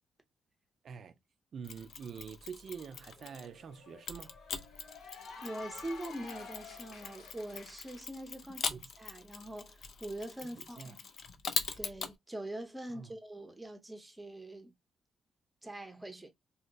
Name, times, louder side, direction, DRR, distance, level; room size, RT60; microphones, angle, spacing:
voice 1, 0.8-1.1 1.5-4.3 8.7-8.9 10.4-10.9 12.9-13.1, right 6 dB, 50° right, 0.4 m, -46 dB
Mechanisms, 1.6-3.6 4.1-12.1, left 6 dB, 60° left, 0.5 m, -42 dB
Cheering / Applause, 2.6-8.0, left 4 dB, 85° left, 1.2 m, -51 dB
voice 2, 5.4-11.0 11.8-14.7 15.6-16.3, right 1 dB, 10° right, 0.7 m, -43 dB
2.7 x 2.0 x 3.9 m
wide cardioid pair, 150°, 0 cm